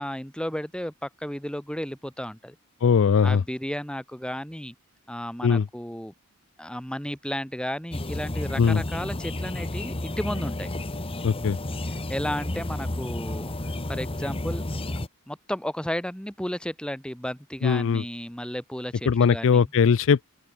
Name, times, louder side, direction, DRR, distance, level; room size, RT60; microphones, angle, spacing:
voice 1, 0.0-2.5 3.2-4.7 5.1-6.1 6.6-10.7 12.1-13.5 13.9-14.6 15.3-19.6, equal, 5° left, 3.3 m, -33 dB
voice 2, 2.8-3.4 5.4-5.7 8.6-8.8 11.2-11.6 17.6-18.0 19.1-20.2, left 6 dB, 60° left, 0.4 m, -20 dB
sound 1, 7.9-15.1, left 1 dB, 25° left, 1.2 m, -31 dB
open air
head